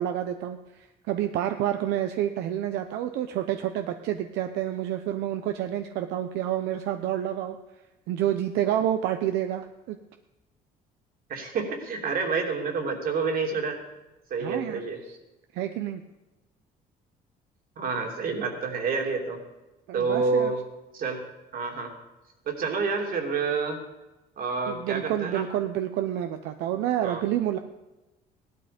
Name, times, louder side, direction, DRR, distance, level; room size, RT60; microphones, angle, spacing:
voice 1, 0.0-7.6 8.1-10.0 14.4-15.2 15.5-16.0 19.9-20.5 24.7-27.6, right 11 dB, 90° right, 7 dB, 0.8 m, -29 dB
voice 2, 11.3-13.8 14.3-15.0 17.8-19.4 19.9-20.6 20.9-21.2 21.5-21.9 22.5-23.8 24.4-25.5 27.0-27.2, right 4 dB, 60° right, 2 dB, 3.0 m, -28 dB
15.5 x 12.5 x 5.2 m, 1.0 s
cardioid pair, 110°, 17 cm